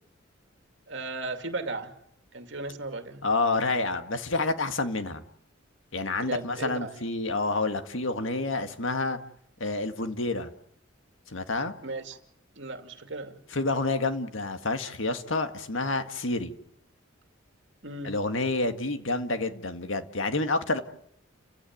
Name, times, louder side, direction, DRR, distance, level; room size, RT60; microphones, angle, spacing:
voice 1, 0.9-2.0 2.3-3.3 6.2-6.9 11.8-12.2 12.6-13.4 17.8-18.2, right 2 dB, 60° right, 2.6 m, -36 dB
voice 2, 3.2-5.2 5.9-9.2 9.6-10.5 11.3-11.7 13.5-16.5 18.0-20.8, left 3 dB, 70° left, 1.9 m, -28 dB
29.5 x 16.0 x 9.4 m
head